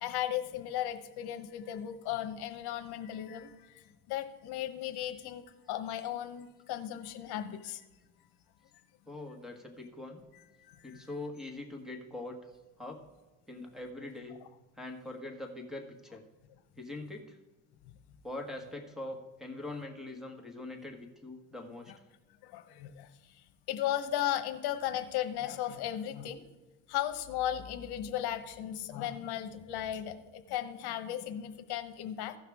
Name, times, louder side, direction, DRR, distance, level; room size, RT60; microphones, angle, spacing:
voice 1, 0.0-7.8 10.7-11.1 22.4-23.1 23.7-26.4 26.9-32.4, left 11 dB, 70° left, 8 dB, 1.0 m, -36 dB
voice 2, 9.1-10.2 10.8-13.0 13.5-14.4 14.8-16.2 16.8-17.4 18.2-21.9, left 2 dB, ahead, 3 dB, 1.5 m, -43 dB
16.0 x 5.7 x 3.5 m, 1.2 s
cardioid pair, 120°, 41 cm